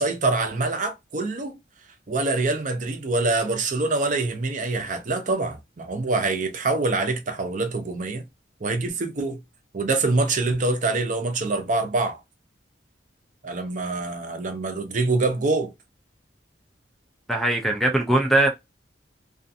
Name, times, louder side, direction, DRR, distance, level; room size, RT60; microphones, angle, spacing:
voice 1, 0.0-1.6 2.1-8.2 8.6-9.4 9.7-12.2 13.4-15.7, right 3 dB, 45° right, 0.6 m, -25 dB
voice 2, 17.3-18.5, right 1 dB, ahead, 0.4 m, -20 dB
2.4 x 2.4 x 2.6 m
head